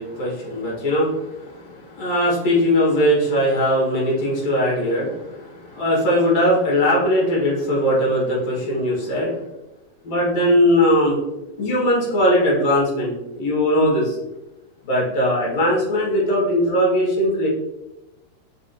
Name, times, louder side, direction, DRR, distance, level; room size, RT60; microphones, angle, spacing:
voice 1, 0.0-9.4 10.0-11.2 11.6-14.2 14.8-17.5, equal, 65° left, -4 dB, 2.7 m, -20 dB
5.7 x 3.4 x 2.7 m, 0.99 s
omnidirectional pair, 3.4 m